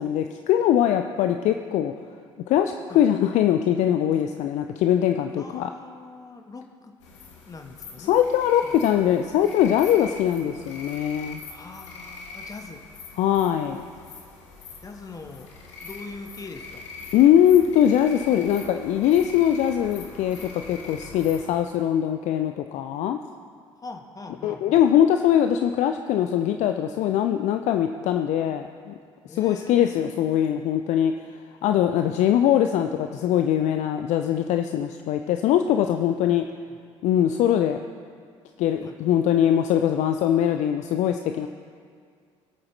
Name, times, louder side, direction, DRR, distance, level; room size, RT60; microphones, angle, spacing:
voice 1, 0.0-1.9 2.5-5.7 8.1-11.4 13.2-13.9 17.1-23.2 24.4-28.9 29.3-31.1 31.6-36.4 37.0-37.8 38.6-41.5, left 10 dB, 50° left, 7 dB, 0.5 m, -22 dB
voice 2, 5.4-7.0 7.4-8.2 8.6-8.9 11.5-12.8 14.8-15.5 15.8-16.9 23.8-24.8 29.2-30.1 32.0-32.1 36.3-36.4 36.7-36.8 38.8-38.9, left 3 dB, 20° left, 4 dB, 1.3 m, -42 dB
sound 1, 7.0-21.6, left 4 dB, 70° left, 1.5 m, -43 dB
22.0 x 8.6 x 3.3 m, 2.1 s
figure-of-eight pair, 55°, 16 cm